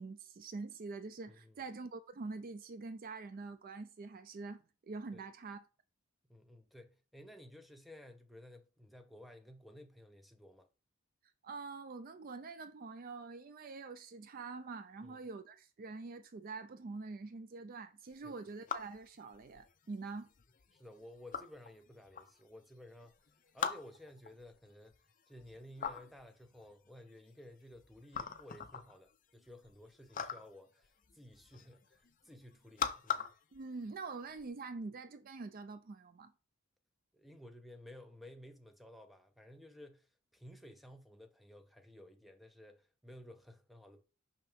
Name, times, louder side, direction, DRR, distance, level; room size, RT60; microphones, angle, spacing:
voice 1, 0.0-5.6 11.4-20.3 33.5-36.3, right 3 dB, 40° right, 0.4 m, -45 dB
voice 2, 1.3-1.6 5.1-5.2 6.3-10.7 15.0-15.2 18.2-18.4 20.7-23.2 23.5-24.9 25.3-33.2 37.1-44.0, left 1 dB, ahead, 0.6 m, -55 dB
sound 1, 18.1-34.5, left 7 dB, 40° left, 0.6 m, -44 dB
6.2 x 5.7 x 3.4 m
head